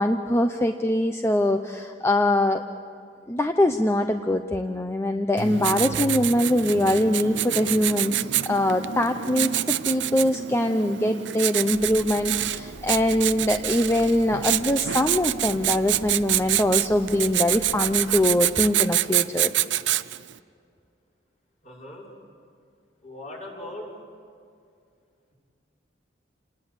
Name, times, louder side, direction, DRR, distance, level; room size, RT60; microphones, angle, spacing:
voice 1, 0.0-2.6 3.3-19.5, left 1 dB, 15° left, 6 dB, 0.7 m, -23 dB
Writing, 5.4-20.3, right 13 dB, 75° right, 0.6 m, -27 dB
sound 1, 11.7-18.4, equal, 90° left, 3.4 m, -45 dB
voice 2, 21.6-22.1 23.0-23.9, left 1 dB, 40° left, -3 dB, 6.3 m, -39 dB
28.5 x 20.0 x 8.2 m, 2.3 s
head